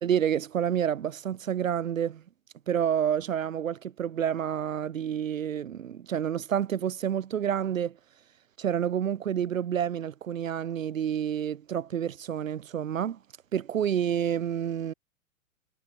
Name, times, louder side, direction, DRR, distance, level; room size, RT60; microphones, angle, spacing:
voice 1, 0.0-2.2 2.7-7.9 8.6-13.2 13.5-14.9, right 9 dB, 70° right, 1.0 m, -29 dB
figure-of-eight pair, 95°, 42 cm